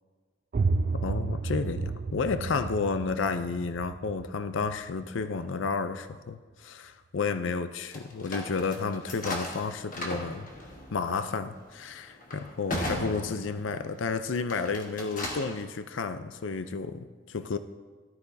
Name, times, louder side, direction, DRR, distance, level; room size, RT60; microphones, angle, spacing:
sound 1, 0.5-6.1, right 4 dB, 40° right, 0.3 m, -32 dB
voice 1, 0.9-10.5 10.9-17.6, left 4 dB, 80° left, 10 dB, 0.5 m, -31 dB
sound 2, 7.9-14.0 14.4-15.6, left 1 dB, 45° left, 1.3 m, -37 dB
14.0 x 12.0 x 2.7 m, 1.4 s
head